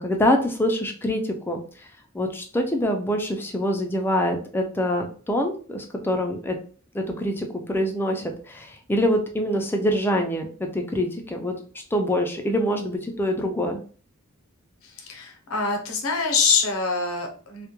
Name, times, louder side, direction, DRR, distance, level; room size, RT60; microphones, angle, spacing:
voice 1, 0.0-1.6 2.1-6.6 6.9-11.5 11.9-13.8, equal, 10° left, 3 dB, 0.3 m, -25 dB
voice 2, 14.8-17.7, left 4 dB, 90° left, 3 dB, 0.7 m, -25 dB
2.2 x 2.1 x 2.9 m, 0.41 s
head